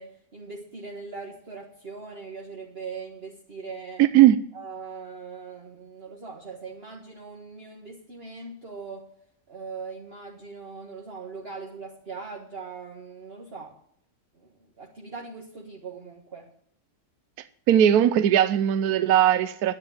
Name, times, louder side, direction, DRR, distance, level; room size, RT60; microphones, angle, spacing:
voice 1, 0.0-4.0 4.5-9.1 9.5-13.8 14.3-16.5, right 4 dB, 40° right, -2 dB, 1.8 m, -40 dB
voice 2, 4.0-4.4 17.7-19.7, right 11 dB, 75° right, 12 dB, 1.1 m, -18 dB
10.5 x 9.6 x 7.1 m, 0.67 s
omnidirectional pair, 1.7 m